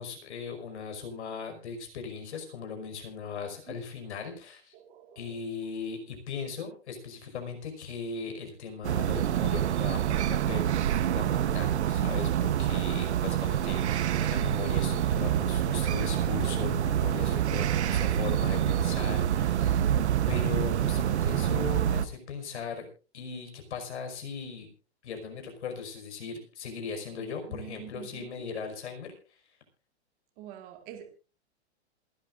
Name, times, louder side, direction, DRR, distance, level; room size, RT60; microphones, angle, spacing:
voice 1, 0.0-4.7 5.2-19.8 20.3-22.9 23.1-24.7 25.0-29.1, left 5 dB, 75° left, 5.4 m, -38 dB
voice 2, 4.7-5.3 18.2-18.4 27.5-28.5 30.4-31.1, right 12 dB, 25° right, 1.8 m, -46 dB
sound 1, 8.8-22.1, right 10 dB, 75° right, 1.0 m, -27 dB
27.0 x 12.0 x 2.6 m
hypercardioid pair, 170°, 34 cm